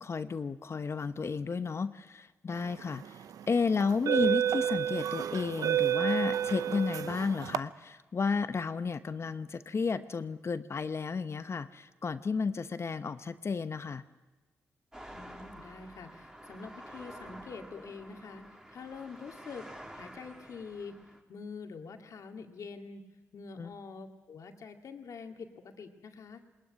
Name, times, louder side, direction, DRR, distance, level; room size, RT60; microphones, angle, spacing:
voice 1, 0.0-14.0 23.6-23.7, left 5 dB, 45° left, 12 dB, 0.9 m, -32 dB
sound 1, 2.8-3.0 3.8-7.6, right 10 dB, 75° right, 0.7 m, -29 dB
sound 2, 14.9-21.2, right 1 dB, 10° right, 3.3 m, -49 dB
voice 2, 15.1-19.7 19.9-21.0 21.3-23.0 23.3-26.4, left 5 dB, 65° left, 4 dB, 2.2 m, -45 dB
20.0 x 19.5 x 9.5 m, 1.2 s
supercardioid pair, 50°, 6 cm